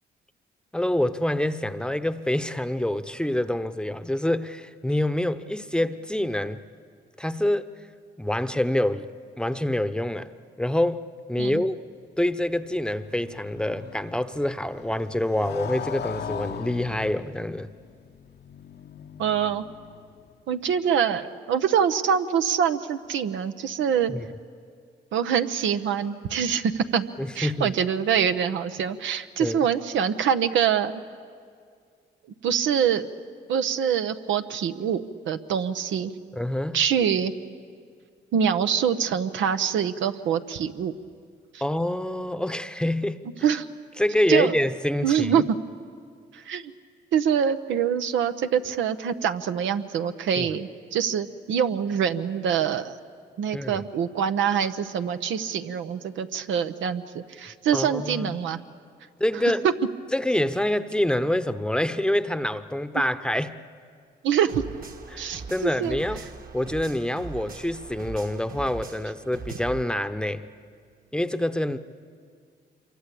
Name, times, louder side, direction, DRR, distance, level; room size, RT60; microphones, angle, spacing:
voice 1, 0.7-6.6 7.2-7.7 8.2-9.1 9.4-10.3 10.6-11.8 12.2-17.7 24.1-24.2 27.2-27.7 29.4-29.6 36.3-36.8 41.6-43.2 44.0-45.5 50.4-50.5 53.5-53.8 57.7-58.4 59.2-59.6 60.1-63.6 65.1-66.2 66.5-70.4 71.1-71.8, left 1 dB, 5° left, 0.9 m, -26 dB
Motorcycle, 12.2-20.4, left 8 dB, 60° left, 0.9 m, -40 dB
voice 2, 19.2-19.7 20.5-24.1 25.1-27.0 27.3-31.0 32.4-33.1 33.5-36.1 36.7-37.3 38.3-40.9 43.4-43.6 44.3-44.5 45.0-45.4 46.3-46.7 47.1-53.0 53.4-58.6 59.6-59.7 64.2-64.6 65.2-66.0, right 8 dB, 85° right, 0.9 m, -25 dB
sound 1, 64.5-69.8, right 4 dB, 50° right, 1.7 m, -41 dB
26.0 x 23.5 x 8.4 m
cardioid pair, 75°, 19 cm